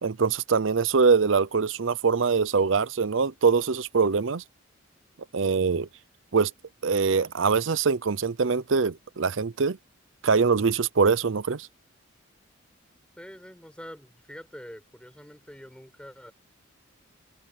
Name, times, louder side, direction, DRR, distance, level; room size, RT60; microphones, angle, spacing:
voice 1, 0.0-4.4 5.3-5.9 6.3-6.5 6.8-9.8 10.2-11.7, right 5 dB, 75° right, 0.6 m, -23 dB
voice 2, 13.2-16.3, equal, 5° left, 4.7 m, -45 dB
open air
head